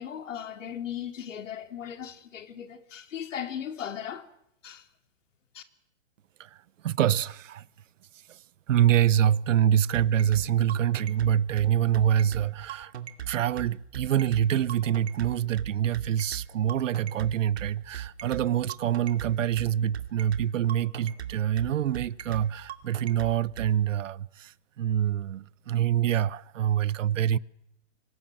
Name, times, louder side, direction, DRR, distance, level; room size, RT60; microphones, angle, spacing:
voice 1, 0.0-4.3 4.6-4.9 5.5-5.6, left 9 dB, 85° left, 3.0 m, -37 dB
voice 2, 6.8-7.6 8.7-12.9 13.3-24.5 24.8-27.4, right 10 dB, 85° right, 1.0 m, -25 dB
sound 1, 9.9-23.7, right 10 dB, 60° right, 2.5 m, -37 dB
27.0 x 24.5 x 7.6 m
hypercardioid pair, 180°, 37 cm